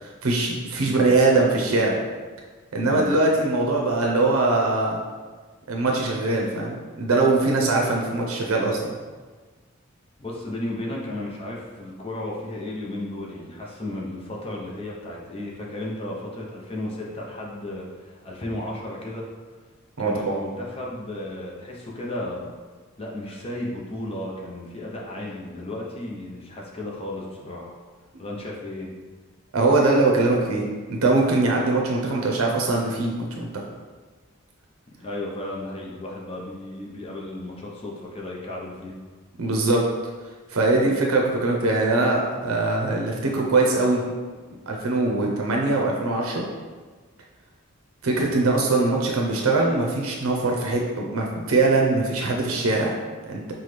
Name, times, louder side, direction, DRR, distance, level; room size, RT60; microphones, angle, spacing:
voice 1, 0.0-1.9 2.7-5.0 5.7-8.9 20.0-20.4 29.5-30.6 30.9-33.5 39.4-39.8 40.5-44.0 44.7-46.4 48.0-53.5, right 2 dB, 80° right, -1 dB, 0.6 m, -22 dB
voice 2, 10.2-19.3 20.0-22.5 23.0-27.7 28.2-28.9 35.0-38.9, left 1 dB, 25° left, -3 dB, 0.7 m, -34 dB
5.7 x 2.2 x 3.2 m, 1.4 s
head